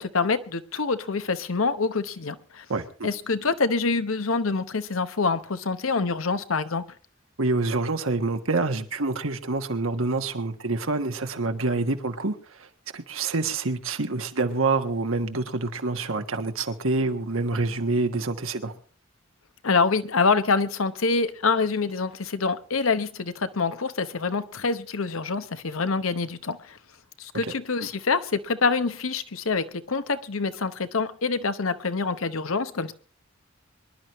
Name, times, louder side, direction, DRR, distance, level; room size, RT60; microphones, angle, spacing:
voice 1, 0.0-2.6 3.0-6.8 19.6-26.8 27.2-32.9, left 4 dB, 90° left, 12 dB, 1.0 m, -26 dB
voice 2, 2.7-3.1 7.4-12.7 12.9-18.7 27.4-27.5 27.8-27.9, right 3 dB, 80° right, 7 dB, 1.4 m, -27 dB
24.5 x 11.0 x 3.1 m, 0.40 s
head